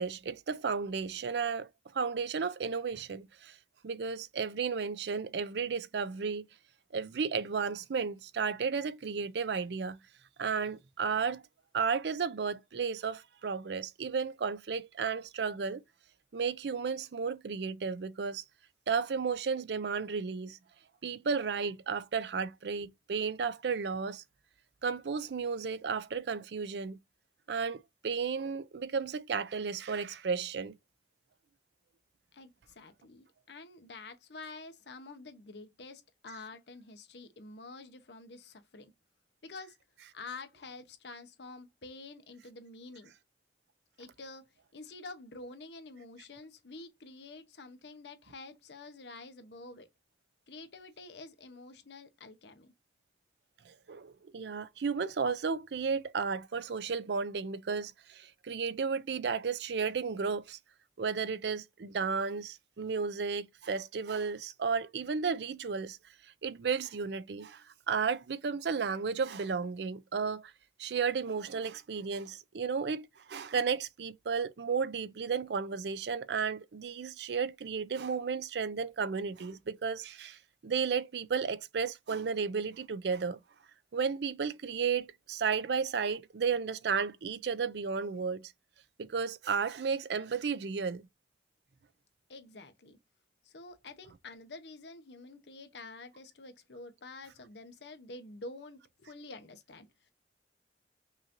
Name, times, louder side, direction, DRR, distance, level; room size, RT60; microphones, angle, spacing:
voice 1, 0.0-1.7 1.9-3.6 3.8-6.5 6.9-10.0 10.4-11.4 11.7-15.8 16.3-18.4 18.9-20.6 21.0-24.2 24.8-27.0 27.5-30.7 53.7-60.6 61.0-66.0 66.4-70.5 70.8-83.4 83.9-88.5 89.0-91.0, right 5 dB, 70° right, 0.4 m, -33 dB
voice 2, 32.3-38.9 39.4-39.8 40.1-43.1 44.0-44.4 44.7-49.9 50.5-52.7 92.3-93.0 93.4-100.1, left 3 dB, 75° left, 0.8 m, -48 dB
5.4 x 2.6 x 2.8 m
head